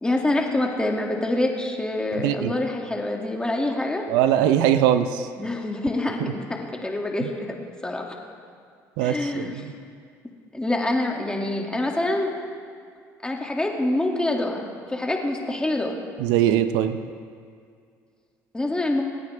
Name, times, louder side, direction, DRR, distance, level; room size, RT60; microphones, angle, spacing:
voice 1, 0.0-4.1 5.4-7.6 7.8-8.2 9.0-9.6 10.5-12.4 13.2-16.0 18.5-19.0, left 2 dB, 10° left, 0 dB, 2.3 m, -26 dB
voice 2, 2.2-2.5 4.1-5.3 7.2-7.3 9.0-9.7 16.2-17.0, right 10 dB, 80° right, 10 dB, 0.7 m, -21 dB
27.0 x 9.4 x 3.5 m, 2.2 s
supercardioid pair, 80°, 7 cm